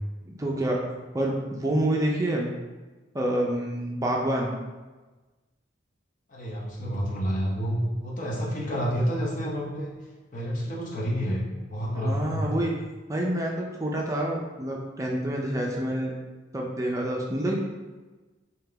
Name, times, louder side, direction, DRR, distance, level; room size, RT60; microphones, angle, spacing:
voice 1, 0.3-0.8 1.1-2.5 3.1-4.5 11.9-12.7 13.1-16.1 16.5-17.6, right 1 dB, 15° right, -1 dB, 0.4 m, -27 dB
voice 2, 6.3-9.9 10.3-11.4 11.7-12.6, equal, 45° left, -3 dB, 0.8 m, -29 dB
3.6 x 2.8 x 3.3 m, 1.2 s
head